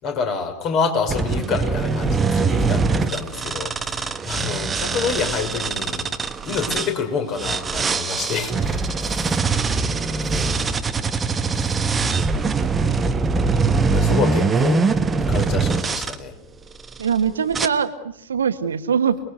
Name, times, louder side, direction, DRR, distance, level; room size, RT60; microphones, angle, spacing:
voice 1, 0.0-6.1 6.5-9.3 13.8-14.8 15.3-16.3, left 5 dB, 35° left, 5 dB, 5.7 m, -27 dB
sound 1, 1.1-6.9 7.4-16.2 16.8-17.1 17.5-17.7, right 4 dB, 15° right, 1.4 m, -22 dB
voice 2, 17.0-19.2, right 7 dB, 70° right, 9 dB, 1.7 m, -22 dB
29.0 x 21.0 x 8.1 m, 0.74 s
figure-of-eight pair, 90°, 0 cm